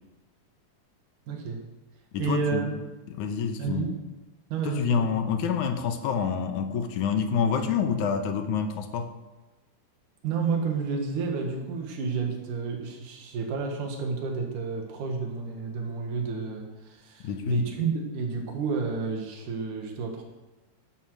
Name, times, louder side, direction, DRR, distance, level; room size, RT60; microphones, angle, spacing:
voice 1, 1.3-1.6 2.2-2.7 3.6-4.0 4.5-5.1 10.2-20.2, right 5 dB, 85° right, 2 dB, 3.2 m, -30 dB
voice 2, 2.1-2.7 3.1-3.9 4.6-9.1 17.2-17.6, left 6 dB, 80° left, 7 dB, 2.6 m, -27 dB
15.5 x 11.5 x 4.8 m, 1.1 s
omnidirectional pair, 3.5 m